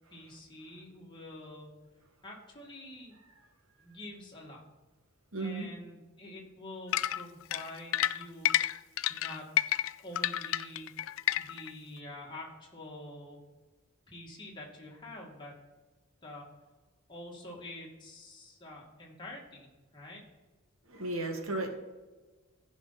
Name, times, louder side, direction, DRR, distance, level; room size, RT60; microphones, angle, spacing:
voice 1, 0.1-1.8 2.2-3.1 3.8-4.6 5.4-8.5 9.1-9.5 10.0-10.9 11.3-13.4 14.1-15.5 16.2-16.5 17.1-20.2, left 1 dB, 20° left, -2 dB, 2.1 m, -46 dB
voice 2, 5.3-5.7 20.9-21.7, right 2 dB, 75° right, 3 dB, 1.8 m, -34 dB
sound 1, 6.9-11.7, left 12 dB, 70° left, 0.3 m, -30 dB
15.0 x 5.2 x 4.1 m, 1.2 s
head